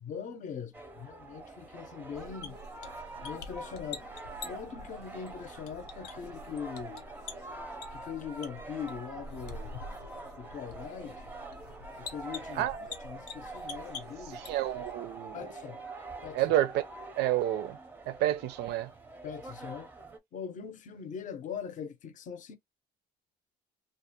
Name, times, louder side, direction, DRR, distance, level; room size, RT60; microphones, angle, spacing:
voice 1, 0.0-2.6 3.2-4.0 4.4-7.1 7.9-9.8 10.4-11.2 12.0-14.6 15.3-15.8 16.2-16.4 19.2-19.9 20.3-22.6, left 7 dB, 50° left, 0.6 m, -41 dB
sound 1, 0.7-20.2, right 2 dB, 10° right, 0.5 m, -45 dB
sound 2, 2.1-14.9, left 3 dB, 85° left, 0.7 m, -47 dB
voice 2, 14.3-15.5 16.3-16.8 17.2-17.8 18.1-18.9, right 13 dB, 80° right, 0.5 m, -29 dB
2.4 x 2.1 x 2.8 m
cardioid pair, 110°, 17 cm